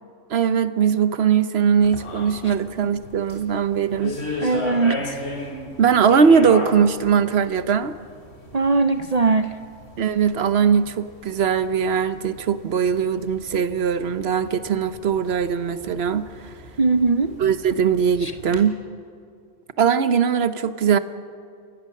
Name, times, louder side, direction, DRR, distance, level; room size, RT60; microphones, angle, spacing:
voice 1, 0.3-4.2 5.8-7.9 10.0-16.5 17.4-18.8 19.8-21.0, right 7 dB, 65° right, 12 dB, 1.1 m, -20 dB
sound 1, 1.8-18.6, left 2 dB, 70° left, 3.2 m, -37 dB
voice 2, 4.4-5.2 8.5-9.6 16.8-17.4 18.2-18.3, right 3 dB, 40° right, 9 dB, 0.6 m, -20 dB
29.5 x 16.5 x 6.6 m, 2.4 s
omnidirectional pair, 1.2 m